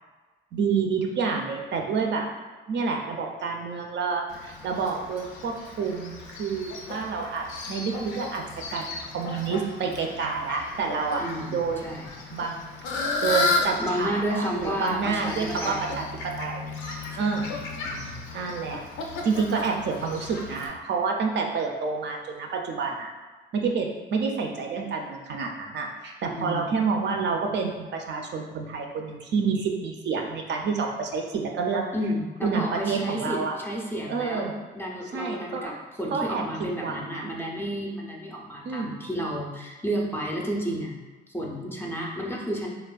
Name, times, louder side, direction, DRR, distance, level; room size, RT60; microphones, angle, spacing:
voice 1, 0.5-2.3 2.7-8.4 8.7-11.9 12.3-12.6 12.9-16.0 16.4-16.7 17.1-17.6 18.3-18.8 19.2-23.1 23.5-31.8 32.4-33.6 34.0-34.5 35.1-35.7 36.1-37.3 38.6-39.0, right 5 dB, 60° right, 2 dB, 0.4 m, -28 dB
Fowl, 4.3-20.7, left 3 dB, 80° left, 0.5 m, -34 dB
voice 2, 11.2-12.1 13.8-15.9 17.1-17.5 17.8-18.2 26.3-26.7 31.9-41.0 41.3-42.7, equal, 10° left, -2 dB, 0.4 m, -31 dB
3.3 x 2.1 x 2.3 m, 1.3 s
cardioid pair, 90°, 20 cm